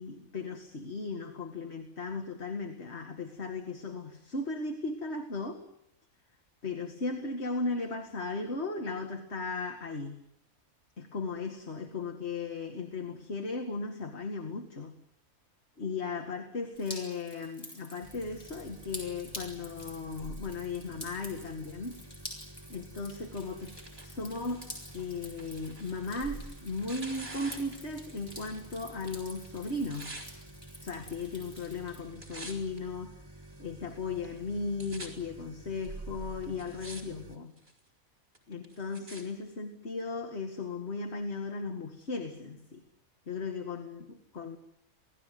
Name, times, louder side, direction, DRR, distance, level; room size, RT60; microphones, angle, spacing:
voice 1, 0.0-5.6 6.6-10.2 11.0-15.0 15.8-22.0 22.7-23.8 24.0-24.7 24.9-30.1 30.8-33.2 33.6-37.5 38.5-42.8 43.3-44.6, left 3 dB, 50° left, 5 dB, 2.3 m, -36 dB
Drip, 16.7-32.0, equal, 30° left, 8.2 m, -49 dB
sound 1, 18.0-37.4, right 2 dB, 20° right, 1.3 m, -49 dB
Tearing, 23.2-28.7 28.9-30.3 31.0-31.5 31.8-32.8 33.4-33.5 34.2-34.3 34.5-35.1 35.8-35.9 36.4-37.0 37.3-37.8 38.3-39.2 40.0-40.1, right 2 dB, 45° right, 5.9 m, -47 dB
28.0 x 18.5 x 9.4 m, 0.81 s
omnidirectional pair, 1.4 m